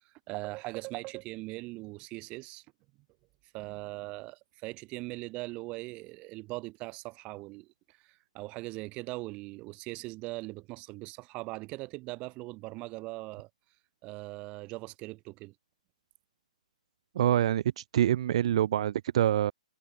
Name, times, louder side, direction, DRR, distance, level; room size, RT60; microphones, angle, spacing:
voice 1, 0.3-2.6 3.5-13.5 14.0-15.5, right 22 dB, 30° right, 6.7 m, -40 dB
voice 2, 17.1-19.5, right 11 dB, 50° right, 0.9 m, -26 dB
figure-of-eight pair, 130°, 4 cm